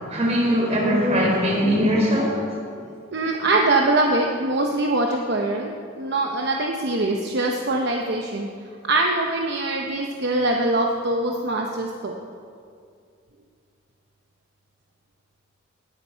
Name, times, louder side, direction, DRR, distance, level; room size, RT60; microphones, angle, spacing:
voice 1, 0.1-2.3, equal, 30° right, -2 dB, 3.6 m, -20 dB
voice 2, 3.1-8.5 8.9-12.1, right 2 dB, 55° right, 1 dB, 0.9 m, -23 dB
19.0 x 10.5 x 4.6 m, 2.3 s
head